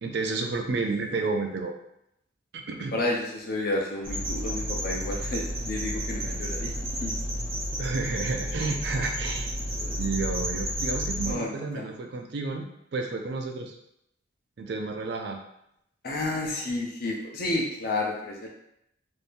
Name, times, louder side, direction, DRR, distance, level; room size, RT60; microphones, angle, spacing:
voice 1, 0.0-1.7 2.5-3.0 7.8-9.5 10.0-13.8 14.6-15.4, right 3 dB, 55° right, 3 dB, 0.4 m, -31 dB
voice 2, 2.9-6.7 7.0-7.1 9.8-10.0 11.3-11.9 16.0-18.5, left 2 dB, 50° left, -1 dB, 0.6 m, -31 dB
sound 1, 4.0-11.3, equal, 85° right, 1.2 m, -31 dB
2.7 x 2.6 x 3.4 m, 0.78 s
head